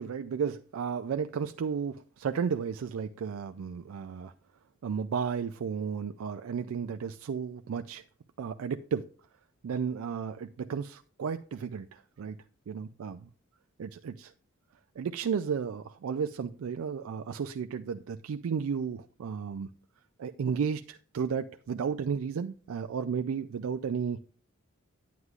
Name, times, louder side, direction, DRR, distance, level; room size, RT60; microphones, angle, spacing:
voice 1, 0.0-4.3 4.8-8.0 8.4-9.1 9.6-12.4 12.7-13.3 13.8-14.3 15.0-19.7 20.2-24.2, right 6 dB, 80° right, 9 dB, 0.4 m, -33 dB
9.6 x 9.4 x 2.4 m, 0.43 s
head